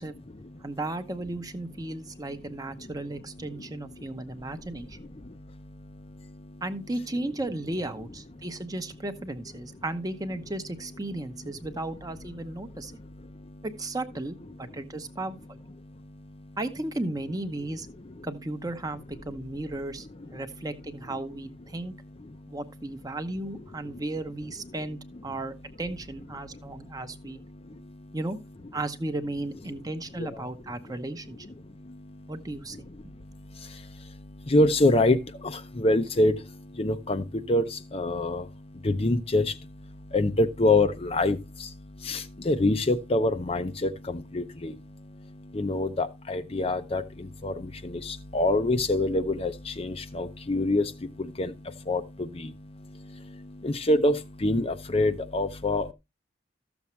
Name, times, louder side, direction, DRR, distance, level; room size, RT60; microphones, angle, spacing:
voice 1, 0.0-0.8 2.0-2.1 2.4-6.6 7.1-7.3 8.4-8.5 9.6-9.7 11.1-11.7 12.4-13.7 14.5-15.2 15.8-16.6 17.6-17.7 18.0-18.3 19.3-19.5 20.0-20.7 21.8-22.6 23.6-24.0 25.4-25.6 26.3-28.2 30.2-30.5 30.9-55.9, left 2 dB, 30° left, 0.6 m, -29 dB
voice 2, 0.6-5.0 6.6-12.9 13.6-15.6 16.6-17.9 18.2-20.1 20.3-21.9 22.5-27.4 28.1-28.4 28.7-31.4 32.3-32.8, right 2 dB, 20° right, 0.8 m, -35 dB
13.5 x 7.1 x 3.1 m
head